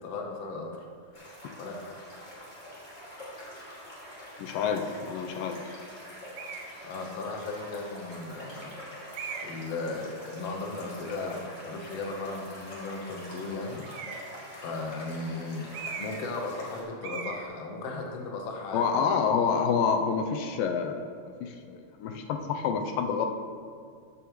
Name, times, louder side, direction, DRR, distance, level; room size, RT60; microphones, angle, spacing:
voice 1, 0.0-0.8 1.6-2.0 6.8-8.7 9.4-14.1 14.5-15.7 16.0-19.0, left 3 dB, 65° left, 1 dB, 1.7 m, -36 dB
sound 1, 1.1-16.8, equal, 20° left, 1.5 m, -45 dB
voice 2, 4.4-5.8 18.7-21.0 21.4-23.3, left 6 dB, 85° left, 5 dB, 2.3 m, -28 dB
sound 2, 6.3-6.7 7.6-7.7 9.1-9.7 13.8-14.4 15.7-16.3 16.6-16.7 17.0-17.4, right 6 dB, 90° right, 1.4 m, -39 dB
14.0 x 7.3 x 3.1 m, 2.2 s
omnidirectional pair, 4.0 m